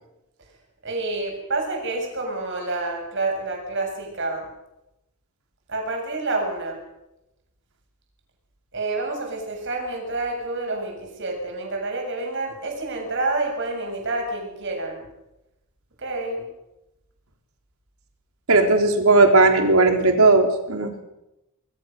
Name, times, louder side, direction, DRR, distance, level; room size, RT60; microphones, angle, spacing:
voice 1, 0.8-4.5 5.7-6.8 8.7-15.0 16.0-16.5, right 2 dB, 55° right, 2 dB, 7.1 m, -28 dB
voice 2, 18.5-21.0, right 3 dB, 75° right, 4 dB, 3.7 m, -17 dB
26.0 x 21.0 x 6.7 m, 0.92 s
head